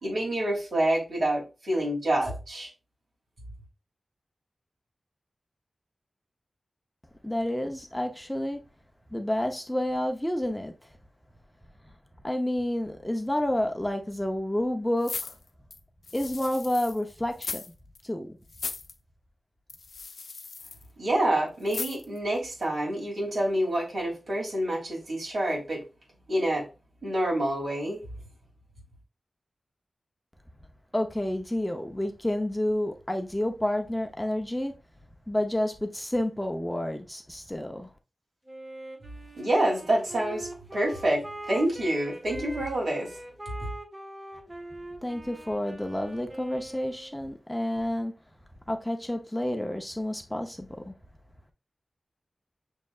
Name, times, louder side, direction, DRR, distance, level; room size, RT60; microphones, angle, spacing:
voice 1, 0.0-2.7 21.0-25.8 26.3-26.7 27.0-28.0 39.4-43.2 43.6-43.7, right 1 dB, 80° right, 2.8 m, -27 dB
voice 2, 7.2-8.6 9.1-10.7 12.2-15.3 16.1-17.6 18.0-18.4 30.9-34.8 35.3-37.9 45.0-48.1 48.7-50.9, left 1 dB, 5° left, 0.6 m, -29 dB
sound 1, 15.0-17.0 17.3-17.7 17.9-18.0 18.5-18.9 19.7-20.8 21.7-22.2 22.6-22.7, left 4 dB, 90° left, 0.6 m, -37 dB
Wind instrument woodwind instrument, 38.4-47.3, right 1 dB, 25° right, 1.4 m, -43 dB
6.3 x 3.3 x 2.4 m
wide cardioid pair, 110°, 0 cm